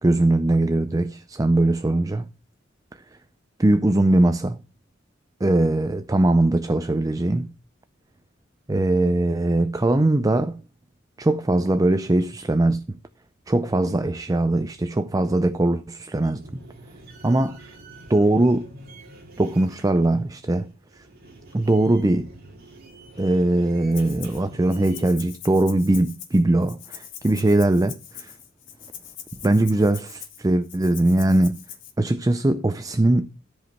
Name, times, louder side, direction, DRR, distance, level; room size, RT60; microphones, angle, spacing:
voice 1, 0.0-2.2 3.6-4.6 5.4-7.5 8.7-10.6 11.2-12.9 13.5-16.4 17.2-17.6 18.1-18.7 19.4-20.7 21.5-22.3 23.2-28.3 29.4-31.6 32.0-33.3, right 2 dB, 20° right, 0.5 m, -21 dB
sound 1, 16.2-25.1, right 1 dB, 50° right, 2.5 m, -46 dB
Rattle (instrument), 23.9-24.4 24.7-31.9, left 9 dB, 70° left, 2.0 m, -42 dB
13.5 x 5.1 x 5.9 m
head